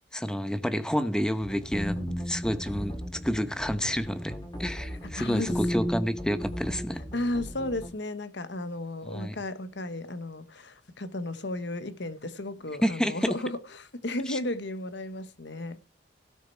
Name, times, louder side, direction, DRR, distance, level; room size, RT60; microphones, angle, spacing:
voice 1, 0.1-7.0 9.0-9.4 12.8-13.4 14.3-14.4, equal, 5° left, 0.9 m, -29 dB
sound 1, 1.4-7.9, equal, 20° left, 2.9 m, -35 dB
voice 2, 5.0-5.6 7.1-15.8, left 1 dB, 65° left, 1.3 m, -34 dB
17.0 x 6.6 x 4.6 m
head